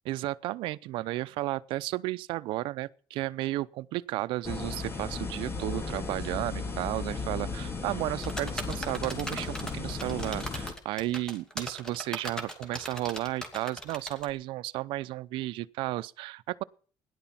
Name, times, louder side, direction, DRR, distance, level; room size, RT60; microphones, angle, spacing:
voice 1, 0.1-16.6, right 17 dB, 85° right, 0.6 m, -33 dB
sound 1, 4.4-10.7, left 4 dB, 30° left, 2.1 m, -35 dB
sound 2, 8.2-14.3, equal, 10° left, 2.6 m, -38 dB
17.0 x 11.0 x 5.9 m
cardioid pair, 135°, 8 cm